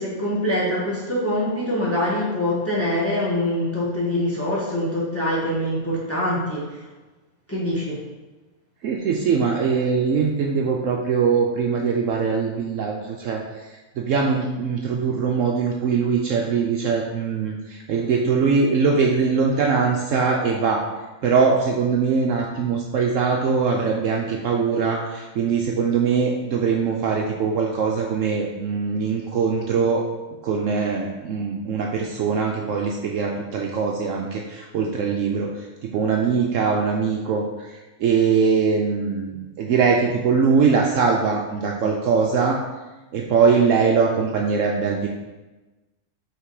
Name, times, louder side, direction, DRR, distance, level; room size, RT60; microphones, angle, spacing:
voice 1, 0.0-6.8 7.5-8.0, left 1 dB, 10° left, -7 dB, 1.5 m, -24 dB
voice 2, 8.8-20.8 21.2-30.0 30.4-42.6 43.1-45.1, right 5 dB, 70° right, 0 dB, 0.9 m, -22 dB
5.7 x 3.7 x 4.7 m, 1.1 s
omnidirectional pair, 1.6 m